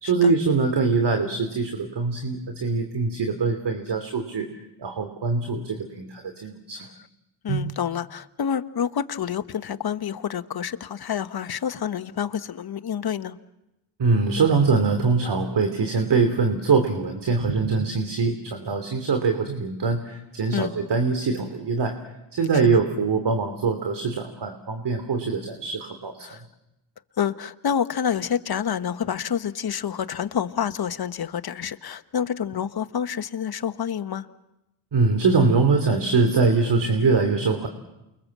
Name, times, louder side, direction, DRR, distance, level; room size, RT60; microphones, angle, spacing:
voice 1, 0.0-4.5 4.8-6.9 7.5-7.7 14.0-22.0 22.3-26.3 34.9-37.7, right 4 dB, 55° right, 7 dB, 3.0 m, -23 dB
voice 2, 7.4-13.4 20.5-20.7 22.5-22.6 26.2-26.4 27.2-34.3, left 8 dB, 45° left, 11 dB, 1.3 m, -28 dB
29.0 x 23.0 x 7.5 m, 0.93 s
supercardioid pair, 55°, 49 cm